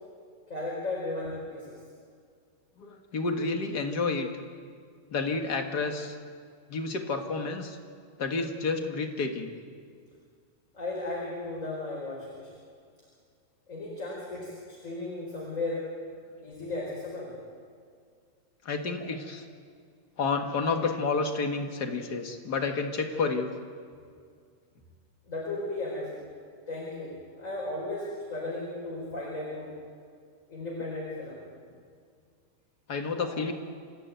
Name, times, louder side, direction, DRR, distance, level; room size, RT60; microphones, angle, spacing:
voice 1, 0.5-1.8 10.7-12.5 13.7-15.9 16.4-17.3 25.2-26.3 26.7-29.7 30.5-31.4, left 2 dB, 25° left, -4 dB, 4.6 m, -35 dB
voice 2, 2.8-4.3 5.1-6.2 6.7-7.8 8.2-9.6 18.6-19.4 20.2-23.5 32.9-33.5, left 4 dB, 40° left, 4 dB, 1.6 m, -30 dB
27.5 x 15.0 x 9.2 m, 2.2 s
omnidirectional pair, 3.7 m